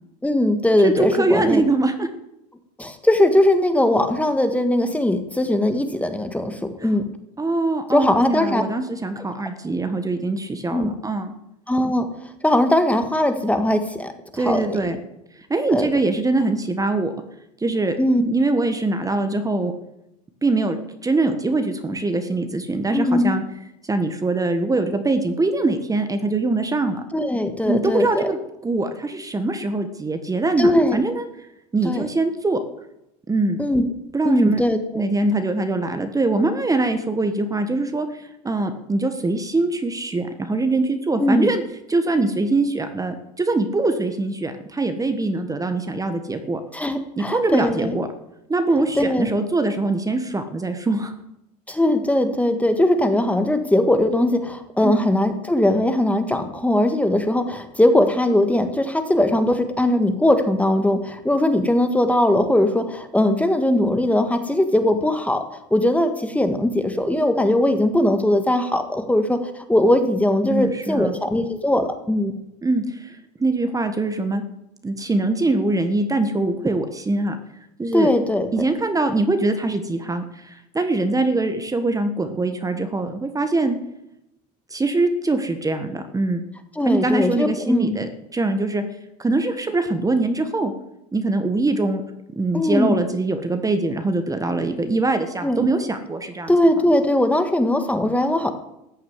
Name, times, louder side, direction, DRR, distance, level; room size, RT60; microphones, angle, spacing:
voice 1, 0.2-1.6 2.8-7.1 7.9-8.6 10.7-10.9 11.7-12.1 12.4-14.9 15.7-15.9 18.0-18.2 22.9-23.4 27.1-28.3 30.6-31.0 31.8-32.0 33.6-33.8 34.2-35.0 41.2-41.5 46.7-47.9 49.0-49.3 51.7-72.3 77.9-78.5 86.8-88.0 92.5-93.0 95.4-95.7 96.5-98.5, left 1 dB, 5° left, 8 dB, 1.6 m, -20 dB
voice 2, 0.8-2.1 6.8-6.9 7.4-11.3 14.4-15.0 15.3-17.1 17.6-19.7 20.4-23.4 23.8-27.0 27.6-31.2 31.7-32.6 33.3-33.6 34.1-34.6 34.9-41.6 41.9-46.6 47.2-48.1 48.5-51.1 54.8-55.0 70.5-71.2 72.6-74.4 74.8-77.4 77.8-78.1 78.5-83.8 84.7-86.4 86.8-88.8 89.2-90.7 91.1-92.0 92.3-96.5, right 2 dB, 15° right, 7 dB, 1.4 m, -23 dB
14.5 x 6.6 x 9.6 m, 0.86 s
supercardioid pair, 95°, 21 cm